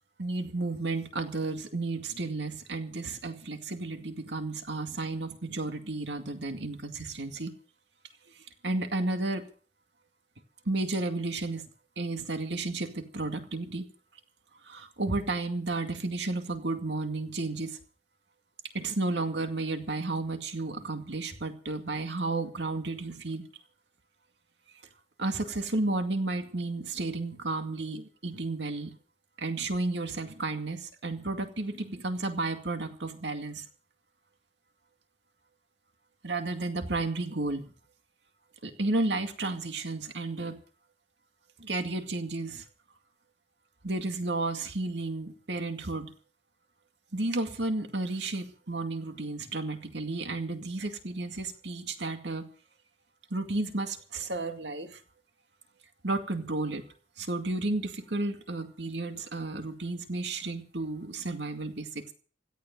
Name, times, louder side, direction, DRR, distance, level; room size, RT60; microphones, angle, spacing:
voice 1, 0.2-7.5 8.6-9.5 10.7-11.6 12.0-13.8 14.6-17.8 18.7-23.4 25.2-28.9 29.4-33.7 36.2-37.7 38.6-40.6 41.6-42.7 43.8-46.1 47.1-52.5 53.3-55.0 56.0-56.8 57.2-62.1, right 2 dB, 75° right, 6 dB, 2.2 m, -32 dB
17.0 x 13.5 x 5.3 m, 0.41 s
head